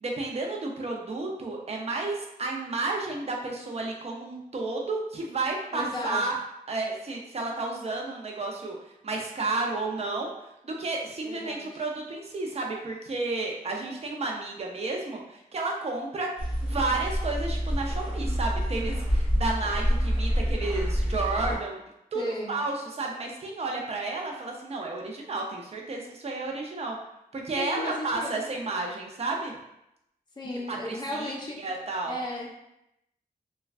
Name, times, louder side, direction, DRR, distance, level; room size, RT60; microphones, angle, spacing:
voice 1, 0.0-6.4 6.7-8.8 9.0-10.3 10.6-16.3 16.6-21.8 22.1-22.2 22.5-27.0 27.3-29.5 30.7-32.2, right 3 dB, 40° right, 0 dB, 0.5 m, -32 dB
voice 2, 5.7-6.3 11.2-11.7 22.1-22.6 27.6-28.4 30.4-31.6 32.0-32.5, left 1 dB, 25° left, -3 dB, 0.6 m, -34 dB
sound 1, 16.4-21.5, equal, 10° right, 1.2 m, -27 dB
3.2 x 2.2 x 2.4 m, 0.83 s
wide cardioid pair, 100°, 16 cm